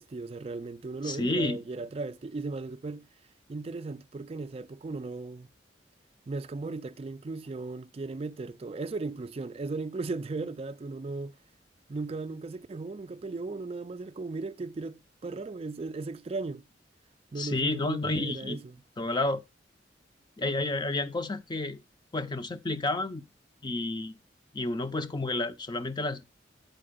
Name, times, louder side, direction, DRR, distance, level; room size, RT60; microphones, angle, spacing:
voice 1, 0.0-3.1 3.5-5.5 6.3-11.4 11.9-16.6 17.3-18.8, right 3 dB, 35° right, 0.4 m, -36 dB
voice 2, 1.0-1.6 17.4-18.6 19.0-19.4 20.4-21.8 22.1-23.2 23.6-24.1 24.5-26.2, left 2 dB, 25° left, 0.5 m, -30 dB
7.6 x 4.7 x 4.9 m
head